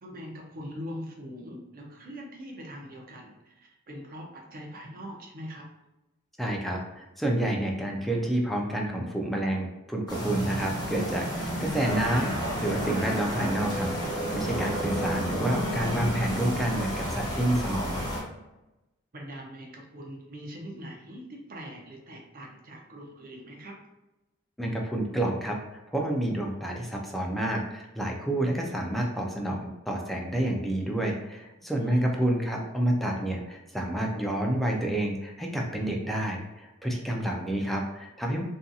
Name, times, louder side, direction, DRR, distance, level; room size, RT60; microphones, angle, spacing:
voice 1, 0.0-5.7 19.1-23.8 31.7-32.0, equal, 45° right, 0 dB, 0.6 m, -42 dB
voice 2, 6.4-18.0 24.6-38.4, right 1 dB, ahead, 0 dB, 0.4 m, -29 dB
sound 1, 10.1-18.2, equal, 20° left, 0.8 m, -31 dB
2.7 x 2.5 x 2.3 m, 1.0 s
head